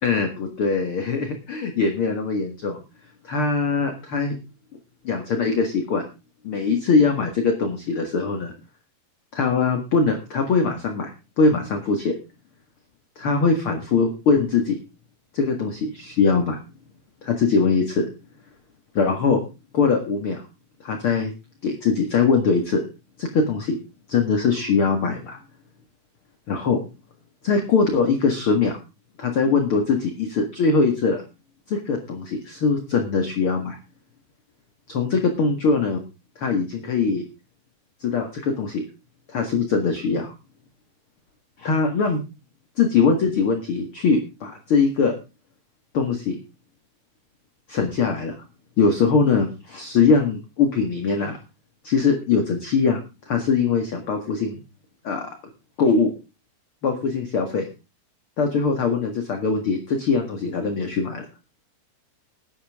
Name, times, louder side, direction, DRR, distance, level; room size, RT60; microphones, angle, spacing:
voice 1, 0.0-2.8 3.2-4.4 5.0-6.1 6.4-8.5 9.3-11.1 11.4-12.1 13.1-14.8 15.3-16.6 17.2-18.1 18.9-19.4 19.7-20.4 20.8-21.3 21.6-22.8 23.2-23.8 24.1-25.4 26.5-26.8 27.4-28.7 29.2-31.2 31.7-33.8 34.9-36.0 36.3-37.2 38.0-38.8 39.3-40.3 41.6-42.2 42.8-45.1 45.9-46.4 47.7-48.3 48.8-51.4 51.8-53.0 53.2-54.6 55.0-55.3 55.8-56.1 56.8-57.7 58.4-61.3, left 4 dB, 45° left, 5 dB, 1.8 m, -22 dB
19.5 x 10.0 x 3.6 m, 0.30 s
omnidirectional pair, 4.8 m